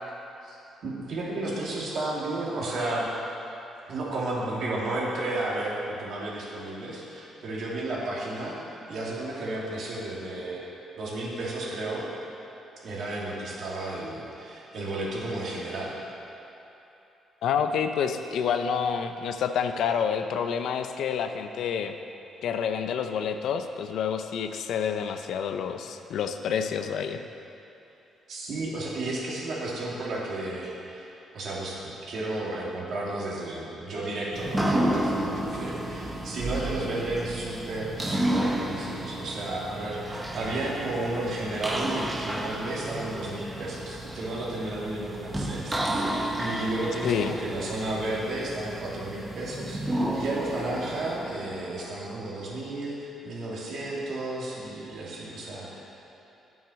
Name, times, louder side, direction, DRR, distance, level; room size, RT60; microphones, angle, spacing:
voice 1, 0.4-3.1 3.9-10.6 11.0-12.1 12.8-16.0 28.3-55.8, right 2 dB, 65° right, -5 dB, 2.6 m, -33 dB
voice 2, 17.4-21.9 22.4-27.2 47.0-47.4, left 7 dB, 75° left, 7 dB, 0.6 m, -28 dB
sound 1, 34.3-52.2, right 1 dB, 15° right, 1.0 m, -32 dB
9.4 x 7.2 x 6.3 m, 2.9 s
cardioid pair, 90°, 0 cm